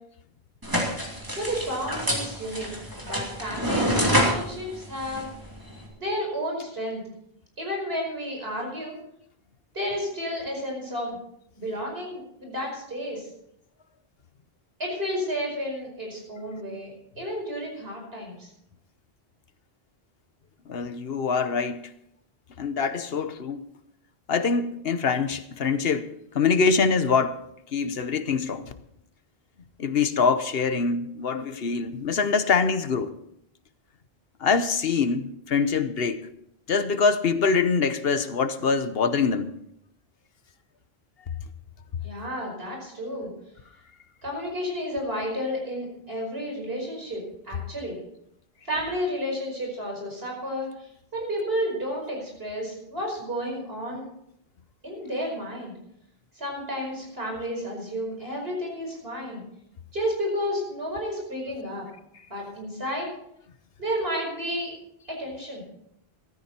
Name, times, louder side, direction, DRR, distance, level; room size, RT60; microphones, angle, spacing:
sound 1, 0.6-5.9, equal, 20° right, 2.9 m, -27 dB
voice 1, 1.3-2.7 3.0-5.3 6.0-7.0 7.6-9.0 9.7-11.2 11.6-13.3 14.8-18.5 42.0-43.3 44.2-48.0 48.6-54.1 54.8-55.7 56.3-59.4 59.9-61.9 62.3-63.1 63.8-64.7 65.1-65.6, equal, 70° right, 5.4 m, -31 dB
voice 2, 20.7-21.9 22.6-23.7 24.3-27.4 27.7-28.7 29.8-33.1 34.4-36.2 36.7-39.5, left 5 dB, 70° left, 1.1 m, -24 dB
15.0 x 12.5 x 4.3 m
omnidirectional pair, 1.0 m